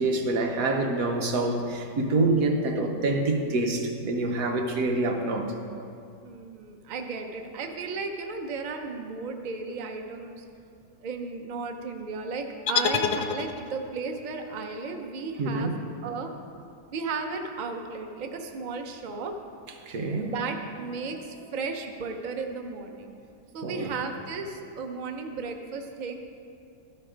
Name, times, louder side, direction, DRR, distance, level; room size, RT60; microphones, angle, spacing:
voice 1, 0.0-5.5 15.4-15.7 19.9-20.3 23.6-23.9, right 2 dB, 65° right, 3 dB, 1.2 m, -26 dB
voice 2, 6.2-10.4 11.0-15.7 16.0-16.3 16.9-19.5 20.2-23.1 23.5-26.2, right 4 dB, 90° right, 4 dB, 0.4 m, -34 dB
sound 1, 12.7-14.0, left 7 dB, 85° left, 1.2 m, -27 dB
13.0 x 4.6 x 5.0 m, 2.5 s
omnidirectional pair, 1.8 m